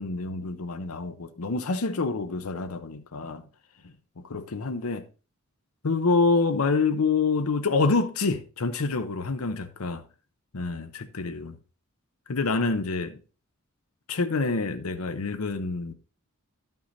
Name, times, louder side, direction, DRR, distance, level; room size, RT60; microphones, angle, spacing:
voice 1, 0.0-3.4 4.2-5.0 5.8-10.0 10.5-11.6 12.3-13.2 14.1-15.9, left 4 dB, 85° left, 0.8 m, -27 dB
11.5 x 5.5 x 4.0 m
head